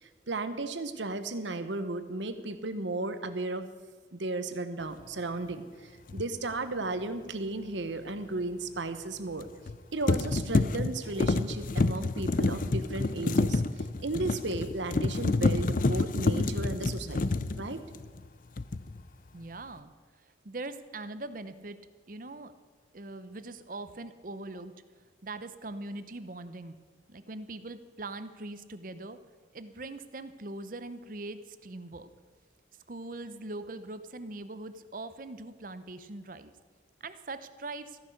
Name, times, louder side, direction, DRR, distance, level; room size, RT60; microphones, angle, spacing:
voice 1, 0.0-3.7 4.1-9.5 9.9-17.2 17.5-17.8, right 2 dB, 80° right, 11 dB, 1.0 m, -34 dB
sound 1, 6.1-6.3 9.4-9.8 10.1-18.3 18.6-19.0, left 3 dB, 45° left, 0.5 m, -28 dB
voice 2, 19.3-19.9 20.4-21.8 22.1-22.5 22.9-24.7 25.2-26.8 27.1-29.2 29.5-32.1 32.9-36.5 37.0-38.0, right 2 dB, 45° right, 12 dB, 0.7 m, -41 dB
14.0 x 10.5 x 6.5 m, 1.5 s
head